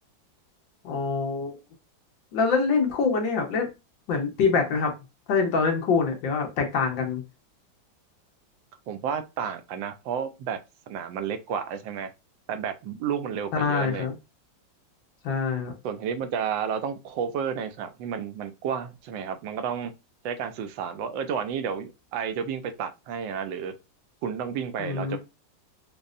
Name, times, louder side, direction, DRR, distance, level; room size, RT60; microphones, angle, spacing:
voice 1, 0.8-1.5 2.3-3.7 4.1-4.9 5.3-7.2 13.5-14.1 15.2-15.7 24.8-25.2, left 5 dB, 80° left, 1.7 m, -25 dB
voice 2, 8.9-10.6 10.9-12.1 12.5-14.1 15.8-19.9 20.2-23.8 24.2-25.2, right 7 dB, 80° right, 1.3 m, -31 dB
5.2 x 2.1 x 2.5 m
omnidirectional pair, 2.1 m